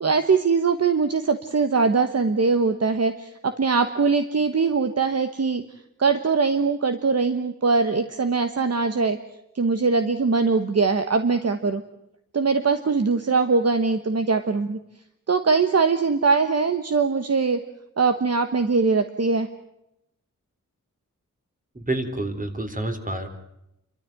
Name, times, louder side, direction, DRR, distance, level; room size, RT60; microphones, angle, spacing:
voice 1, 0.0-5.6 6.0-9.2 9.5-11.8 12.3-14.8 15.3-17.6 18.0-19.5, right 4 dB, 50° right, 8 dB, 1.2 m, -22 dB
voice 2, 21.8-23.3, right 2 dB, 25° right, 6 dB, 3.5 m, -28 dB
29.5 x 13.5 x 9.1 m, 0.83 s
wide cardioid pair, 115°, 31 cm